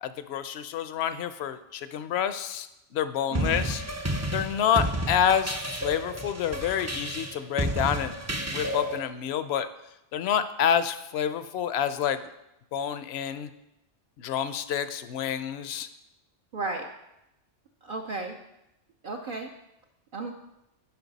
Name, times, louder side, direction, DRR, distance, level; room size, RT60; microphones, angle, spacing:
voice 1, 0.0-2.7 2.9-3.8 4.3-8.1 8.5-9.7 10.1-12.2 12.7-13.5 14.2-15.9, left 9 dB, 65° left, 12 dB, 0.8 m, -28 dB
sound 1, 3.3-9.0, equal, 25° right, 0.4 m, -31 dB
voice 2, 3.3-3.7 16.5-16.9 17.8-18.4 19.0-19.5 20.1-20.3, right 3 dB, 55° right, 2 dB, 0.7 m, -33 dB
10.5 x 5.6 x 4.0 m, 0.89 s
omnidirectional pair, 1.2 m